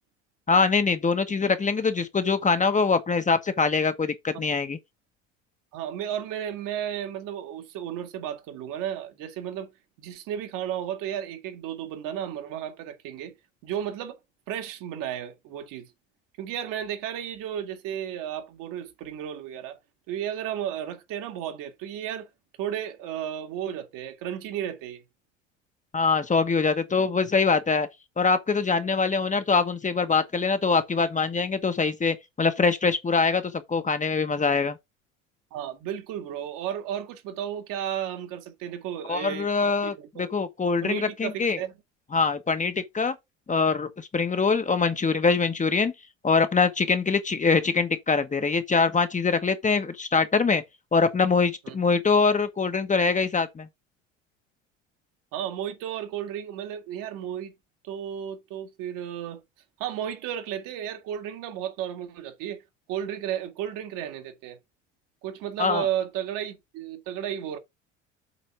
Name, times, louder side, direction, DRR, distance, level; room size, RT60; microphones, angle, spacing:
voice 1, 0.5-4.8 25.9-27.9 28.2-34.8 39.1-41.6 42.1-43.1 43.5-45.9 46.2-50.6 50.9-53.7 65.6-65.8, left 4 dB, 20° left, 1.2 m, -23 dB
voice 2, 5.7-9.7 10.0-13.3 13.6-14.2 14.5-15.9 16.4-19.8 20.1-22.3 22.6-25.0 35.5-40.3 40.8-41.7 51.7-51.8 55.3-57.5 57.8-59.4 59.8-62.6 62.9-64.6 65.2-67.6, right 10 dB, 60° right, 2.1 m, -33 dB
8.2 x 4.0 x 4.8 m
hypercardioid pair, 70°, 37 cm